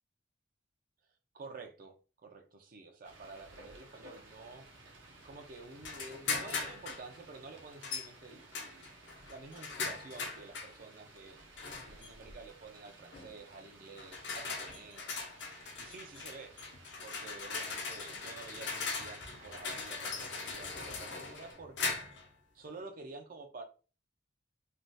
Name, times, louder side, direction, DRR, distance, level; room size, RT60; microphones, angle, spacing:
voice 1, 1.3-1.9 2.2-4.7 5.2-8.9 9.3-11.4 11.9-15.1 15.8-16.5 17.0-22.0 22.5-23.6, right 3 dB, 45° right, 0.4 m, -50 dB
sound 1, 3.0-21.5, right 2 dB, 75° right, 0.9 m, -56 dB
sound 2, 5.8-7.1 7.8-8.1 8.5-10.7 11.6-12.1 13.1-13.3 14.0-22.3, left 4 dB, 65° left, 0.7 m, -40 dB
3.3 x 2.3 x 2.6 m
head